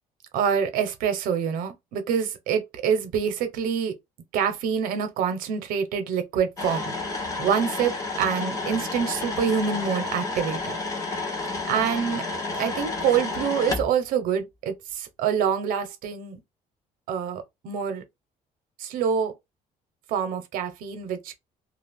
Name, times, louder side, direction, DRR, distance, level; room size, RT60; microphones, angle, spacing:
voice 1, 0.3-3.9 4.3-6.8 7.4-10.8 11.7-12.2 12.6-16.4 17.1-18.0 18.8-19.3 20.1-21.4, right 7 dB, 85° right, 0.8 m, -26 dB
sound 1, 6.6-13.9, left 3 dB, 25° left, 0.7 m, -31 dB
2.5 x 2.3 x 3.4 m
cardioid pair, 170°, 14 cm